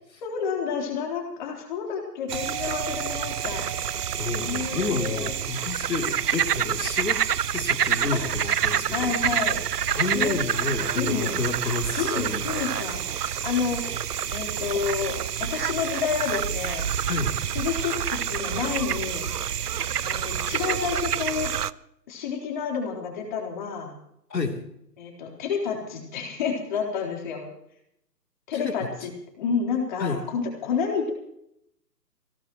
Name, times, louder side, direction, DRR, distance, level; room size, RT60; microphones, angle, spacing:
voice 1, 0.2-3.7 4.4-5.4 8.1-8.2 8.9-9.6 10.1-10.4 10.9-13.8 14.3-16.9 17.5-19.3 20.0-21.5 22.1-23.9 25.0-27.5 28.5-29.1 29.4-31.1, left 6 dB, 30° left, 0 dB, 3.9 m, -30 dB
Doorbell, 2.3-6.9, right 8 dB, 25° right, 1.9 m, -41 dB
sound 1, 2.3-21.7, right 9 dB, 70° right, 0.7 m, -28 dB
voice 2, 4.2-9.1 9.9-12.7 17.1-17.4 24.3-24.6 28.5-28.8 29.0-29.1 30.0-30.2, left 4 dB, 85° left, 4 dB, 3.4 m, -30 dB
23.5 x 17.5 x 3.1 m, 0.75 s
hypercardioid pair, 155°, 49 cm